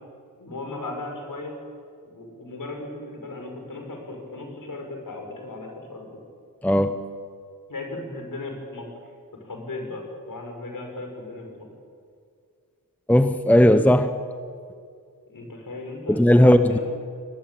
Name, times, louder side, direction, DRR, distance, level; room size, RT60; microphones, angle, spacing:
voice 1, 0.4-1.6 2.0-6.1 7.7-8.9 9.4-11.7 15.3-16.8, left 2 dB, 60° left, 2 dB, 6.1 m, -36 dB
voice 2, 6.6-7.1 13.1-14.2 16.1-16.8, equal, 5° left, 10 dB, 0.8 m, -17 dB
24.0 x 19.5 x 8.7 m, 2.2 s
wide cardioid pair, 125°, 36 cm